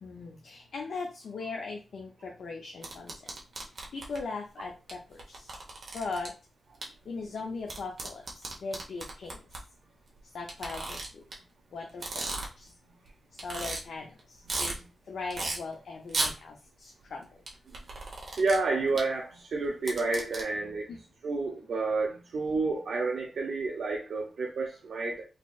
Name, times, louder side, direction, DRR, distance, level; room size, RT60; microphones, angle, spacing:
voice 1, 0.0-3.3 3.9-5.6 5.9-6.3 6.8-9.4 10.3-11.2 11.7-12.3 12.6-12.7 13.3-17.4 20.9-21.0, left 4 dB, 75° left, 1 dB, 0.6 m, -39 dB
sound 1, 2.8-4.2 4.9-5.0 5.2-6.3 6.8-6.9 7.7-9.6 10.5-11.3 11.9-12.7 13.1-13.2 13.4-13.8 14.2-14.7 15.3-15.6 16.1-16.3 17.5-18.6 19.0-19.1 19.6-20.4, right 2 dB, 50° right, 1.0 m, -34 dB
voice 2, 18.4-20.9 21.2-25.3, right 3 dB, 70° right, -2 dB, 0.7 m, -30 dB
4.1 x 2.9 x 2.4 m, 0.32 s
wide cardioid pair, 155°, 0 cm